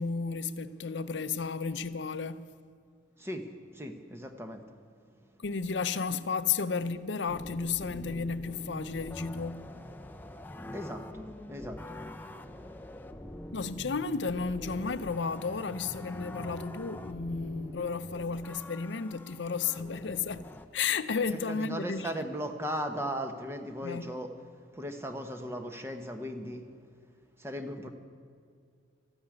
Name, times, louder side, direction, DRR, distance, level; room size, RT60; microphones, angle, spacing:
voice 1, 0.0-2.5 5.4-9.7 13.5-22.2 23.8-24.1, left 5 dB, 70° left, 0.6 m, -33 dB
voice 2, 3.7-4.6 10.7-12.0 21.3-24.3 24.8-26.6 27.4-27.9, equal, 15° right, 1.0 m, -37 dB
sound 1, 7.3-20.7, left 1 dB, 10° left, 0.6 m, -44 dB
13.5 x 9.7 x 9.7 m
head